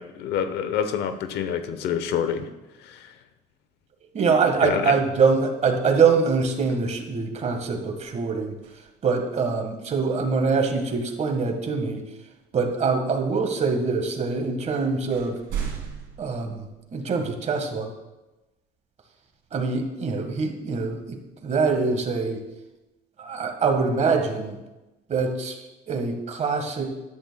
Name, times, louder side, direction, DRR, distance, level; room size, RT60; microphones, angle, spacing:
voice 1, 0.0-2.5 2.8-3.1 4.6-4.9, left 8 dB, 80° left, 10 dB, 0.9 m, -27 dB
voice 2, 4.1-8.5 9.0-12.0 12.5-15.3 16.2-17.9 19.5-21.2 21.4-22.4 23.2-24.6 25.1-25.6 25.9-26.9, right 5 dB, 40° right, 5 dB, 1.6 m, -24 dB
sound 1, 7.5-9.2 11.4-11.6 12.4-13.1 14.0-14.1 14.5-17.3 17.9-18.0 20.6-22.8, right 8 dB, 75° right, 2.4 m, -39 dB
13.5 x 11.0 x 2.3 m, 1.0 s
cardioid pair, 110°, 17 cm